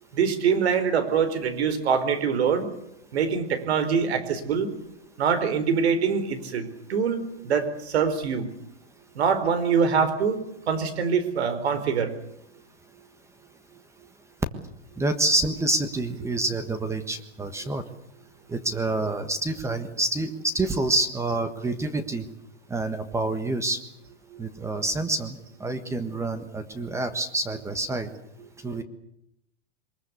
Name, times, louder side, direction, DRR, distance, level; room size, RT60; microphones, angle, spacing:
voice 1, 0.1-2.7 3.1-4.7 5.2-8.5 9.1-10.4 10.7-12.1 24.3-24.4 28.6-28.7, right 6 dB, 70° right, 12 dB, 4.6 m, -24 dB
voice 2, 15.0-17.8 18.5-22.3 22.7-23.8 24.4-28.1 28.6-28.8, right 2 dB, 10° right, 9 dB, 1.5 m, -27 dB
23.0 x 21.5 x 8.3 m, 0.77 s
hypercardioid pair, 145°, 33 cm